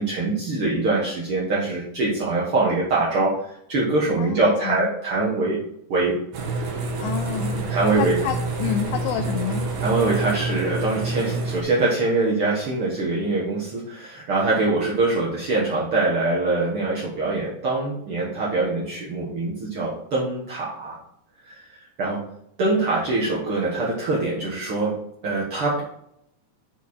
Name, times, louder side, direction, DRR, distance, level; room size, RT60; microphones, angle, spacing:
voice 1, 0.0-5.6 5.9-6.1 7.7-8.2 9.8-21.0 21.4-22.2 22.6-24.9 25.2-25.8, right 3 dB, 90° right, -5 dB, 1.2 m, -23 dB
voice 2, 4.2-4.9 7.0-7.7 7.9-9.7, left 10 dB, 85° left, 6 dB, 2.6 m, -29 dB
sound 1, 6.3-11.6, right 3 dB, 70° right, 1.6 m, -27 dB
6.9 x 4.7 x 4.2 m, 0.73 s
omnidirectional pair, 4.7 m